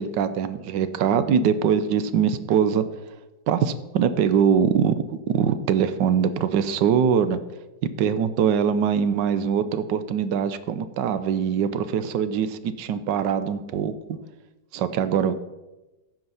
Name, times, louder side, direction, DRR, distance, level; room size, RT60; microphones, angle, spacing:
voice 1, 0.0-2.8 3.5-7.4 8.0-14.2 14.7-15.3, right 7 dB, 80° right, 12 dB, 1.3 m, -23 dB
15.0 x 5.3 x 5.5 m, 1.1 s
omnidirectional pair, 2.0 m